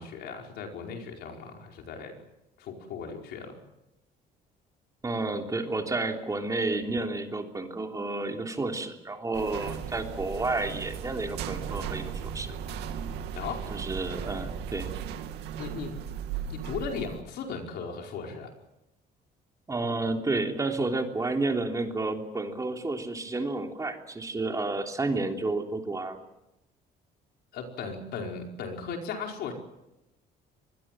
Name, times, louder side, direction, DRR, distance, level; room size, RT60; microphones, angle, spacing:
voice 1, 0.0-2.2 2.6-3.6 13.3-13.7 15.6-16.2 16.5-18.5 27.5-29.5, left 5 dB, 75° left, 2 dB, 5.0 m, -37 dB
voice 2, 5.0-12.5 13.7-14.9 19.7-26.2, right 2 dB, 20° right, 3 dB, 3.3 m, -31 dB
sound 1, 9.3-17.2, right 8 dB, 90° right, 2.4 m, -36 dB
25.0 x 21.0 x 7.7 m, 0.93 s
cardioid pair, 110°, 17 cm